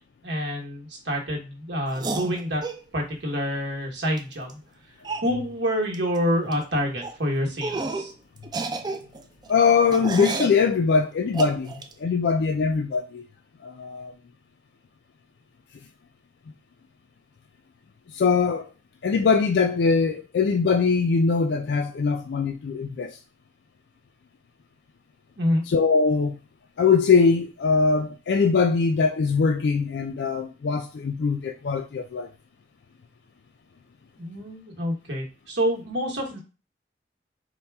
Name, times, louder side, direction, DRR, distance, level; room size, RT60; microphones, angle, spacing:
voice 1, 0.2-2.6 2.9-4.6 5.2-8.1 25.4-25.6 34.2-36.4, equal, 75° right, 1.1 m, -27 dB
sound 1, 1.9-2.8 4.2-4.3 4.5-4.6 5.0-5.3 5.9-6.2 6.4-6.6 7.0-7.2 7.6-8.1 8.4-10.6 11.3-11.9, right 3 dB, 25° right, 0.3 m, -31 dB
voice 2, 9.5-11.7 12.0-13.2 13.6-14.1 18.1-18.7 19.0-23.2 25.7-26.4 26.8-32.3, left 5 dB, 70° left, 0.3 m, -22 dB
4.2 x 2.2 x 3.4 m
head